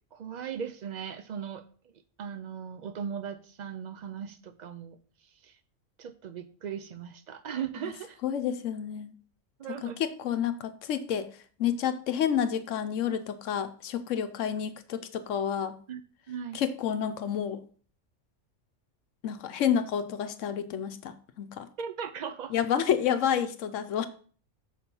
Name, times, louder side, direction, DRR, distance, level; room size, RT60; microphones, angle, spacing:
voice 1, 0.1-1.6 2.2-5.6 6.0-8.2 9.6-10.0 15.9-16.0 16.3-16.6 21.8-22.5, right 7 dB, 80° right, 10 dB, 0.4 m, -38 dB
voice 2, 8.2-9.1 9.8-11.3 11.6-15.8 16.5-17.6 19.2-21.7 22.5-24.1, left 9 dB, 75° left, 11 dB, 1.0 m, -29 dB
6.5 x 4.4 x 5.3 m, 0.44 s
omnidirectional pair, 1.3 m